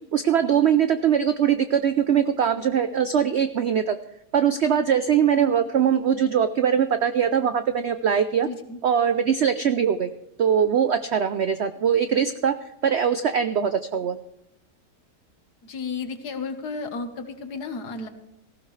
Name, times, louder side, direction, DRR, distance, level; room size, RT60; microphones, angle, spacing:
voice 1, 0.1-4.0 4.3-8.5 8.8-10.1 10.4-12.5 12.8-14.2, right 8 dB, 90° right, 10 dB, 0.5 m, -21 dB
voice 2, 8.4-8.8 15.6-18.1, left 4 dB, 65° left, 8 dB, 1.8 m, -33 dB
18.0 x 15.5 x 3.2 m, 0.85 s
omnidirectional pair, 1.9 m